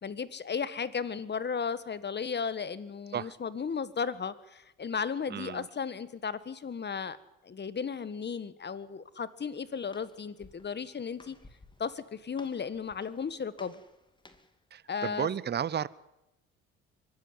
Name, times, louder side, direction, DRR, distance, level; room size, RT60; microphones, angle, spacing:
voice 1, 0.0-7.2 7.4-11.4 11.8-13.8 14.9-15.3, left 6 dB, 35° left, 15 dB, 1.5 m, -35 dB
voice 2, 5.3-5.7 14.7-15.9, right 8 dB, 35° right, 19 dB, 0.8 m, -33 dB
Walk footsteps, 9.3-14.6, left 2 dB, 15° left, 2.4 m, -58 dB
24.0 x 13.5 x 9.7 m, 0.89 s
supercardioid pair, 80°, 30 cm